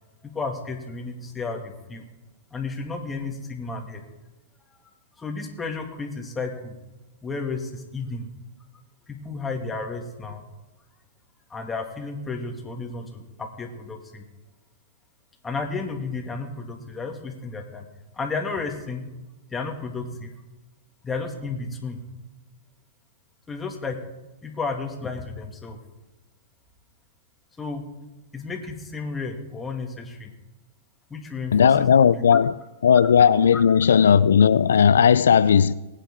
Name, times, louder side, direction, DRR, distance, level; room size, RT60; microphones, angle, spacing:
voice 1, 0.2-2.1 2.5-4.0 5.2-6.7 7.2-8.3 9.1-10.4 11.5-14.2 15.4-17.9 18.1-19.0 19.5-20.3 21.0-22.0 23.5-24.0 24.4-25.8 27.6-27.8 28.3-30.3 31.1-32.2 33.5-33.6, left 4 dB, 15° left, 2.1 m, -32 dB
voice 2, 31.5-32.5 32.8-35.7, left 7 dB, 85° left, 0.4 m, -16 dB
19.5 x 9.2 x 3.7 m
hypercardioid pair, 125°, 0 cm